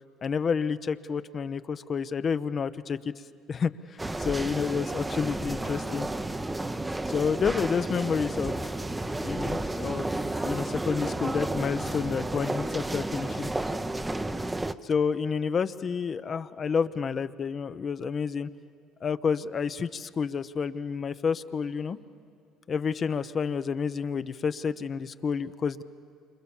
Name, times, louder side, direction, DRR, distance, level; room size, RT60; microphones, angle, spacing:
voice 1, 0.2-3.0 3.5-3.7 4.2-6.1 7.1-8.5 9.2-10.1 10.4-13.5 14.8-18.5 19.0-22.0 22.7-25.8, left 6 dB, 40° left, 12 dB, 0.9 m, -29 dB
sound 1, 4.0-14.7, right 2 dB, 15° right, 0.9 m, -32 dB
28.5 x 26.5 x 7.2 m, 2.4 s
supercardioid pair, 75°, 0 cm